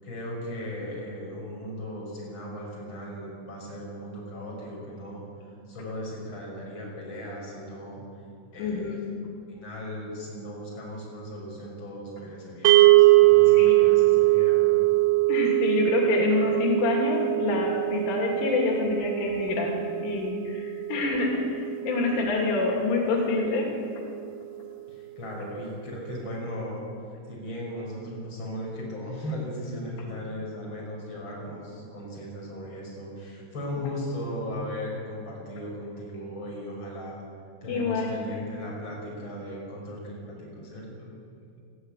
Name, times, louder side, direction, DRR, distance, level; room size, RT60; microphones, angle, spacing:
voice 1, 0.0-5.2 5.7-8.0 8.5-9.0 9.5-14.8 24.9-26.8 27.3-37.2 37.6-41.1, equal, 25° left, -3 dB, 6.3 m, -37 dB
voice 2, 8.6-9.0 13.5-13.9 15.3-19.7 20.0-23.7 37.7-38.1, left 4 dB, 85° left, 0 dB, 5.0 m, -27 dB
sound 1, 12.6-22.9, right 20 dB, 80° right, 2.4 m, -22 dB
20.0 x 14.5 x 9.0 m, 2.4 s
omnidirectional pair, 5.4 m